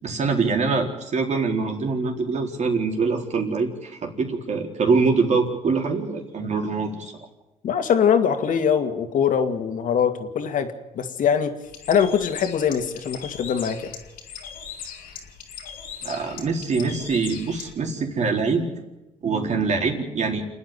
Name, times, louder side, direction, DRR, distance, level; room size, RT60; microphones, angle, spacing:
voice 1, 0.0-7.1 16.0-18.7 19.2-20.4, right 4 dB, 55° right, 2 dB, 4.3 m, -24 dB
voice 2, 7.6-10.7 10.9-11.5 11.9-13.9, left 7 dB, 70° left, 7 dB, 2.3 m, -22 dB
Bird, 11.6-17.7, left 7 dB, 90° left, 2.8 m, -39 dB
29.0 x 9.7 x 9.7 m, 1.0 s
cardioid pair, 70°, 14 cm